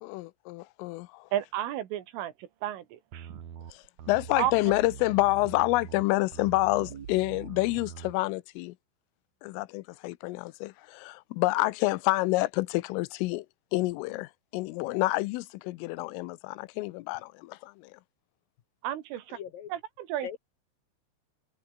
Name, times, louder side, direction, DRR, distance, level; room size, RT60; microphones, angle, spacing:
voice 1, 0.0-1.2 4.1-8.7 9.4-13.5 13.7-17.7, left 21 dB, 85° left, 3.4 m, -28 dB
voice 2, 1.3-3.4 4.4-4.5 18.8-19.4 19.7-20.3, right 12 dB, 80° right, 4.4 m, -32 dB
sound 1, 3.1-8.2, right 9 dB, 50° right, 2.4 m, -43 dB
voice 3, 19.3-19.7 20.2-20.4, left 9 dB, 65° left, 2.4 m, -40 dB
omnidirectional pair, 5.7 m